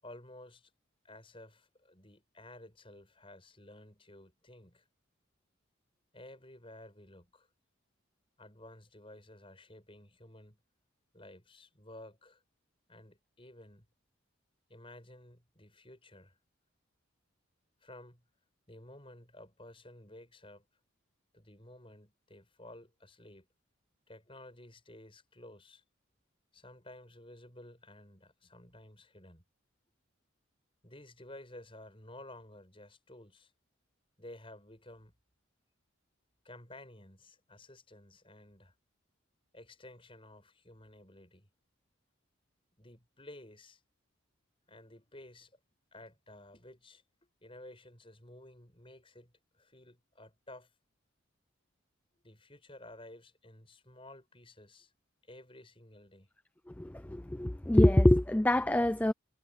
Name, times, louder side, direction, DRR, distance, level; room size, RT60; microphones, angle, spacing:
voice 1, 0.0-0.7 1.0-4.8 6.1-7.5 8.4-10.6 11.1-12.4 12.9-13.9 14.7-16.4 17.8-18.2 18.7-20.6 21.3-23.5 24.1-25.8 26.5-29.4 30.8-33.5 34.2-35.1 36.4-38.7 39.5-41.5 42.8-43.8 44.7-45.5 45.9-47.0 47.4-50.7 52.2-54.9 55.2-56.3, left 1 dB, 25° left, 7.7 m, -53 dB
voice 2, 56.7-59.1, left 1 dB, 10° left, 0.3 m, -25 dB
head